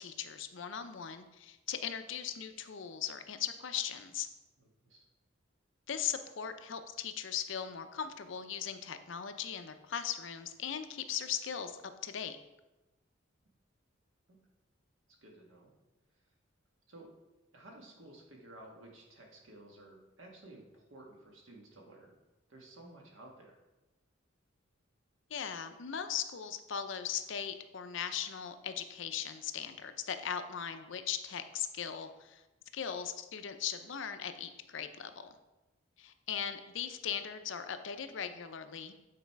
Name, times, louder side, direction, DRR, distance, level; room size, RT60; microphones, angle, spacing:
voice 1, 0.0-4.3 5.9-12.4 25.3-32.4 32.7-35.3 36.0-38.9, left 8 dB, 65° left, 9 dB, 0.6 m, -39 dB
voice 2, 4.6-5.0 14.3-14.4 15.2-15.7 16.9-17.1 17.5-22.1 22.5-23.6, right 1 dB, 75° right, 0 dB, 1.6 m, -54 dB
8.6 x 4.0 x 4.6 m, 1.1 s
head